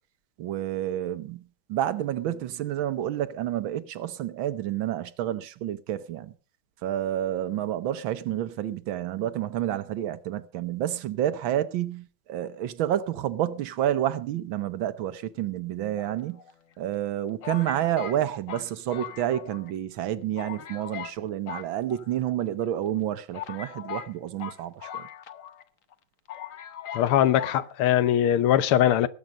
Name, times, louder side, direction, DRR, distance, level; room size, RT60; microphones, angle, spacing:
voice 1, 0.4-1.4 1.7-6.3 6.8-16.4 16.8-25.0, right 12 dB, 70° right, 1.6 m, -29 dB
sound 1, 16.0-16.7 17.4-19.7 20.0-20.1 20.4-21.2 21.5-22.4 23.0-23.1 23.3-25.6 25.9-26.0 26.3-27.1 27.4-27.6, left 9 dB, 55° left, 0.9 m, -39 dB
voice 2, 27.0-29.1, left 11 dB, 85° left, 1.8 m, -21 dB
19.0 x 8.4 x 5.3 m
omnidirectional pair, 2.3 m